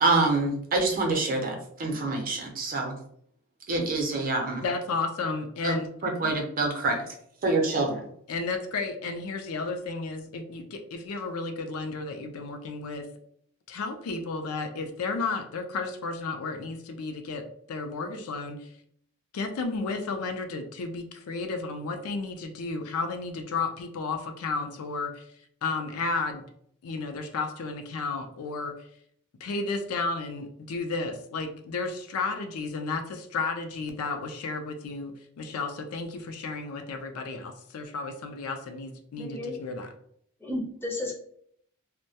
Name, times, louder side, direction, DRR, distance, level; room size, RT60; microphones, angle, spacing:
voice 1, 0.0-2.9 3.7-4.6 5.6-5.7 6.0-7.1 7.4-8.1, right 3 dB, 40° right, 1 dB, 0.5 m, -26 dB
voice 2, 4.6-5.9 8.3-13.1 13.7-18.7 19.3-25.2 25.6-26.5 26.8-28.7 29.4-39.9, left 3 dB, 75° left, 6 dB, 0.4 m, -33 dB
voice 3, 39.2-39.5 40.4-41.1, left 1 dB, 10° left, 0 dB, 0.4 m, -33 dB
2.2 x 2.1 x 2.7 m, 0.66 s
head